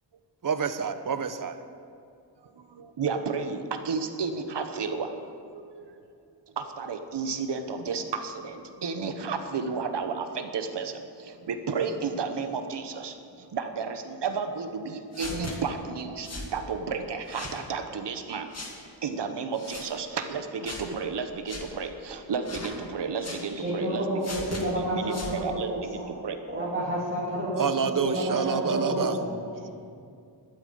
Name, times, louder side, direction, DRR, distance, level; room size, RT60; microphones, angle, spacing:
voice 1, 0.4-1.6 27.6-29.2, right 6 dB, 50° right, 10 dB, 0.8 m, -27 dB
voice 2, 2.6-6.0 6.5-18.5 19.0-24.3 24.9-25.2 25.4-26.4, right 5 dB, 70° right, 7 dB, 1.1 m, -32 dB
sound 1, 15.1-15.6 16.2-16.5 17.3-17.6 18.5-18.7 19.5-19.9 20.6-20.9 21.5-21.6 22.4-22.8 23.2-23.4 24.2-24.6 25.1-25.4, left 2 dB, 35° left, 1.9 m, -38 dB
voice 3, 23.5-26.1 26.5-29.3, equal, 20° right, -8 dB, 2.7 m, -30 dB
12.5 x 8.8 x 7.8 m, 2.4 s
wide cardioid pair, 135°, 43 cm